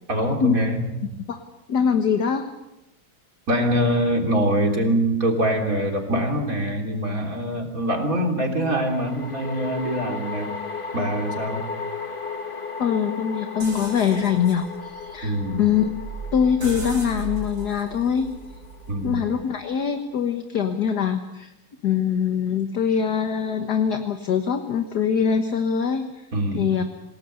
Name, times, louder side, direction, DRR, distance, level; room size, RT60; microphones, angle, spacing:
voice 1, 0.1-0.8 3.5-10.5 10.9-11.6 15.2-15.7 18.9-19.3 26.3-26.7, right 1 dB, 40° right, 2 dB, 3.8 m, -24 dB
voice 2, 1.7-2.5 12.8-16.1 16.3-18.3 19.0-21.5 21.8-26.3 26.5-26.8, left 7 dB, 55° left, 6 dB, 1.8 m, -23 dB
sound 1, 5.7-5.8 8.7-20.1, left 5 dB, 30° left, 1.4 m, -36 dB
pancarte-tole, 13.6-19.4, right 3 dB, 80° right, 6.6 m, -37 dB
28.0 x 18.5 x 6.8 m, 0.93 s
omnidirectional pair, 2.2 m